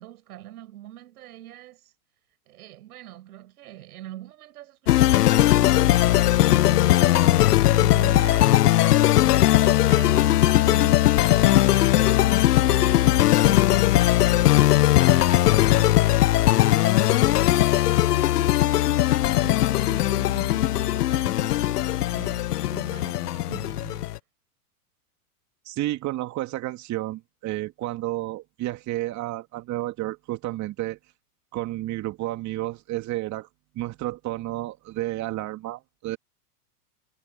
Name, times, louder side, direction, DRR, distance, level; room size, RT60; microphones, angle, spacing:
voice 1, 0.0-1.9 2.5-9.4 9.9-12.1 12.6-16.1 16.6-18.6 19.2-24.1, right 14 dB, 70° right, 6.0 m, -43 dB
sound 1, 4.9-24.2, left 14 dB, 75° left, 1.0 m, -19 dB
voice 2, 25.7-31.0 31.5-33.5 33.7-36.2, right 16 dB, 35° right, 2.7 m, -31 dB
hypercardioid pair, 115°, 46 cm